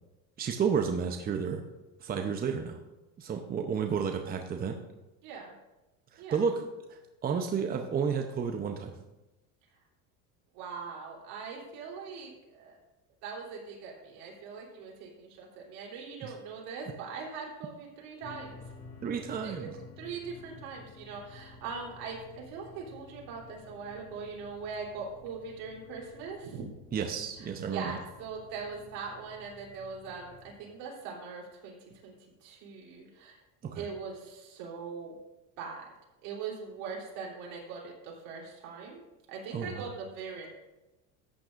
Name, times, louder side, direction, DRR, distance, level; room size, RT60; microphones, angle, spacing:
voice 1, 0.4-1.6 2.0-2.8 3.2-4.8 6.1-6.6 6.9-8.9 16.2-16.3 19.0-19.7 26.9-28.0 33.6-33.9 39.5-39.9, right 6 dB, 25° right, 4 dB, 0.7 m, -31 dB
voice 2, 5.2-5.5 6.2-6.4 10.5-12.8 13.2-18.6 19.1-19.7 20.0-26.6 27.7-33.4 33.7-35.2 35.6-35.9 36.2-39.0 39.3-40.5, right 5 dB, 70° right, -2 dB, 3.4 m, -41 dB
sound 1, 18.2-30.5, left 4 dB, 35° left, 2.2 m, -52 dB
14.0 x 9.1 x 2.5 m, 1.0 s
supercardioid pair, 120°, 35 cm